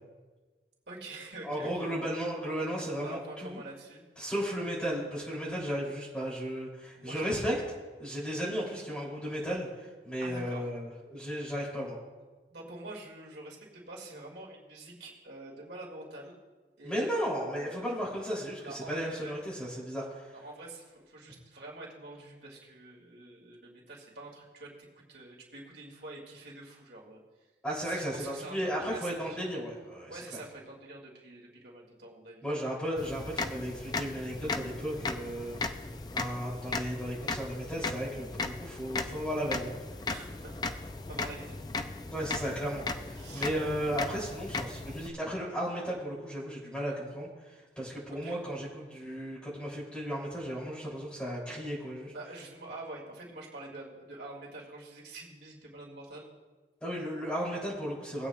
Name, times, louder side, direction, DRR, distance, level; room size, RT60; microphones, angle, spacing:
voice 1, 0.9-2.2 2.9-4.0 6.9-7.2 10.2-10.6 12.5-16.3 16.8-17.8 18.6-19.3 20.3-27.2 27.8-29.4 30.1-32.4 40.1-41.6 43.2-43.5 48.2-48.4 52.1-56.3, right 2 dB, 75° right, -3 dB, 2.4 m, -46 dB
voice 2, 1.4-3.6 4.2-7.5 8.0-12.0 16.8-20.3 27.6-30.4 32.4-35.6 36.1-39.7 42.1-52.1 56.8-58.3, equal, 5° left, -6 dB, 3.1 m, -35 dB
sound 1, 33.0-45.1, left 3 dB, 25° left, 0.4 m, -37 dB
19.5 x 8.2 x 2.4 m, 1.3 s
head